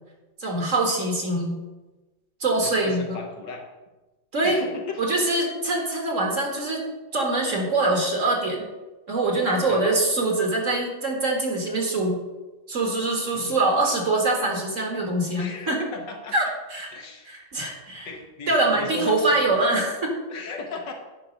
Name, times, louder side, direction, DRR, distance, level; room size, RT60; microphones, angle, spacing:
voice 1, 0.4-1.6 2.4-3.2 4.3-4.6 5.0-6.8 7.1-8.7 9.1-12.2 12.7-15.8 16.3-16.5 16.7-16.9 17.3-18.1 18.5-20.1, right 2 dB, 45° right, 0 dB, 1.9 m, -24 dB
voice 2, 2.6-3.7 4.4-5.2 9.7-10.0 13.3-13.6 15.4-16.4 16.9-17.3 18.1-19.5 20.3-20.9, left 4 dB, 70° left, 2 dB, 1.8 m, -36 dB
9.6 x 5.9 x 5.2 m, 1.1 s
omnidirectional pair, 2.0 m